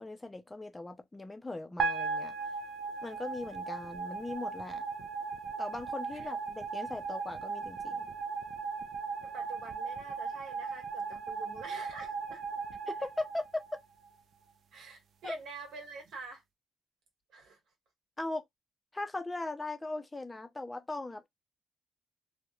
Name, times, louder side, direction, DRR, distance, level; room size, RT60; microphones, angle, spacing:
voice 1, 0.0-2.3 3.0-4.8 5.6-8.1 12.9-13.6 15.2-15.4 18.2-18.4 18.9-21.3, left 2 dB, 15° left, 0.4 m, -39 dB
sound 1, 1.8-14.1, right 5 dB, 55° right, 0.3 m, -37 dB
voice 2, 9.2-12.4 14.7-16.4 17.3-17.6, right 4 dB, 70° right, 1.4 m, -47 dB
2.9 x 2.1 x 2.3 m
cardioid pair, 155°, 0 cm